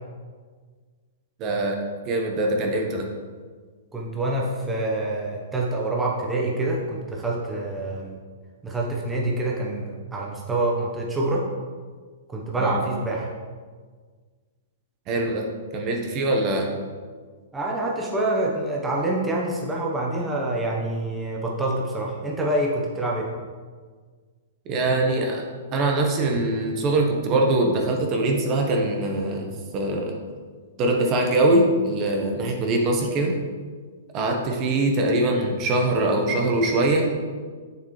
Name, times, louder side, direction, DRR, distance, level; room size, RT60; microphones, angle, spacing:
voice 1, 1.4-3.1 12.6-12.8 15.1-15.5 15.7-16.7 24.7-25.4 25.7-29.5 29.7-30.2 30.8-33.3 34.1-37.1, right 2 dB, 35° right, 1 dB, 1.2 m, -22 dB
voice 2, 3.9-8.2 8.6-11.5 12.3-13.3 17.5-23.3, right 2 dB, 10° right, -3 dB, 1.1 m, -26 dB
7.0 x 6.7 x 3.3 m, 1.5 s
hypercardioid pair, 130°, 0 cm